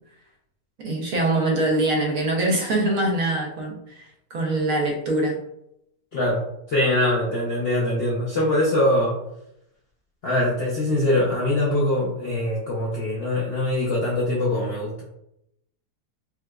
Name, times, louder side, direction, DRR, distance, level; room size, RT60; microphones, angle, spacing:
voice 1, 0.8-5.4, right 2 dB, 65° right, -1 dB, 1.1 m, -23 dB
voice 2, 6.1-9.2 10.2-15.0, left 1 dB, 65° left, -4 dB, 0.6 m, -23 dB
4.6 x 2.1 x 2.2 m, 0.79 s
omnidirectional pair, 1.7 m